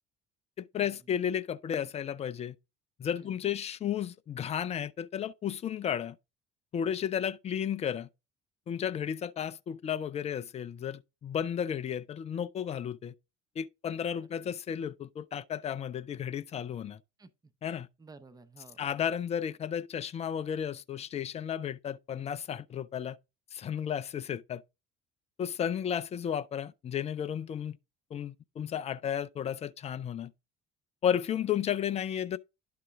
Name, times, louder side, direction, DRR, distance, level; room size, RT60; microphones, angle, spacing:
voice 1, 0.6-2.6 3.0-6.2 6.7-8.1 8.7-13.1 13.6-17.0 17.6-17.9 18.8-23.2 23.5-24.6 25.4-27.8 28.1-30.3 31.0-32.4, left 9 dB, 20° left, 0.4 m, -33 dB
voice 2, 14.2-14.5 17.2-17.5 18.0-18.8 31.3-31.5, right 3 dB, 10° right, 0.7 m, -54 dB
11.0 x 3.8 x 3.5 m
figure-of-eight pair, 55°, 35 cm